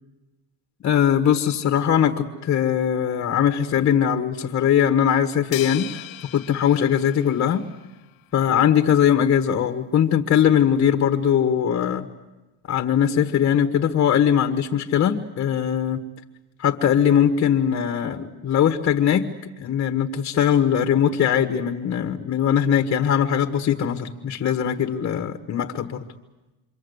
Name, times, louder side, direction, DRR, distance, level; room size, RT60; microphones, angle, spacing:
voice 1, 0.8-6.0 6.3-7.6 8.3-12.1 12.7-16.0 16.6-19.3 19.6-26.0, left 9 dB, 35° left, 6 dB, 1.4 m, -20 dB
sound 1, 5.5-8.0, left 15 dB, 60° left, 1.3 m, -38 dB
27.0 x 25.0 x 8.1 m, 1.1 s
cardioid pair, 140°, 39 cm